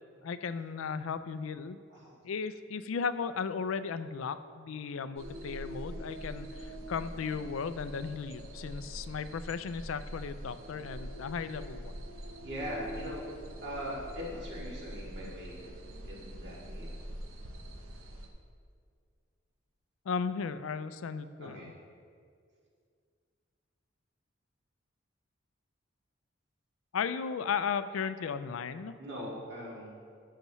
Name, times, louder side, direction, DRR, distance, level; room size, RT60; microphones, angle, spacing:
voice 1, 0.2-1.8 2.2-12.0 20.1-21.6 26.9-29.0, left 6 dB, 90° left, 12 dB, 0.4 m, -35 dB
sound 1, 5.2-18.3, equal, 90° right, 0.9 m, -44 dB
voice 2, 12.4-13.3 13.6-17.0 21.4-21.7 29.0-30.0, equal, 60° right, -5 dB, 2.3 m, -41 dB
13.5 x 6.6 x 3.1 m, 2.2 s
head